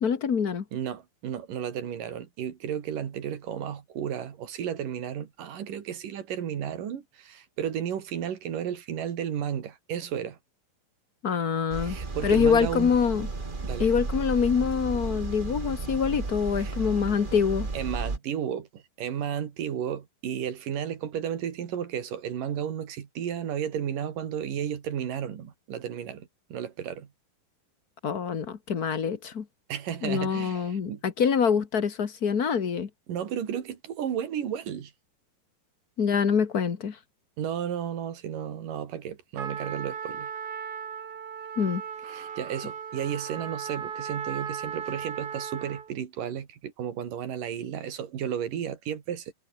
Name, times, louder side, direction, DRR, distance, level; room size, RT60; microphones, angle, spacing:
voice 1, 0.0-0.6 11.2-12.0 12.2-13.3 13.8-17.7 28.0-29.4 30.0-32.9 36.0-37.0 41.6-41.8, left 6 dB, 50° left, 1.1 m, -25 dB
voice 2, 0.7-10.4 11.8-13.0 13.6-13.9 16.6-16.8 17.7-27.1 29.7-31.0 33.1-34.9 37.4-40.3 42.1-49.3, right 9 dB, 65° right, 3.8 m, -33 dB
sound 1, 11.7-18.2, right 3 dB, 30° right, 1.0 m, -33 dB
Trumpet, 39.4-45.9, right 7 dB, 80° right, 5.1 m, -37 dB
omnidirectional pair, 4.2 m